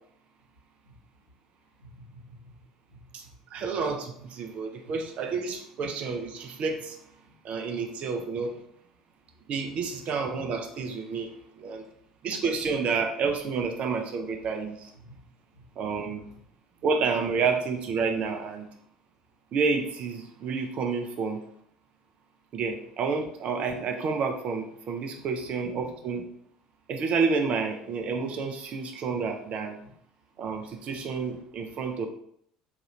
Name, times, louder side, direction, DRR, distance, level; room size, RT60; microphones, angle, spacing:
voice 1, 1.6-2.5 2.9-3.8 4.2-4.3 4.8-4.9 7.2-7.6 8.6-8.7 9.9-10.0 14.4-14.5 14.9-15.2 15.5-16.4 16.8-16.9 25.4-25.9 30.3-30.4, right 1 dB, 90° left, -5 dB, 1.0 m, -54 dB
voice 2, 3.5-7.0 7.4-8.6 9.5-11.8 12.2-14.9 15.8-16.3 16.8-18.7 19.5-21.4 22.5-26.2 26.9-29.8 30.4-32.1, right 5 dB, 45° right, 5 dB, 0.5 m, -29 dB
2.8 x 2.4 x 3.1 m, 0.67 s
figure-of-eight pair, 60°, 3 cm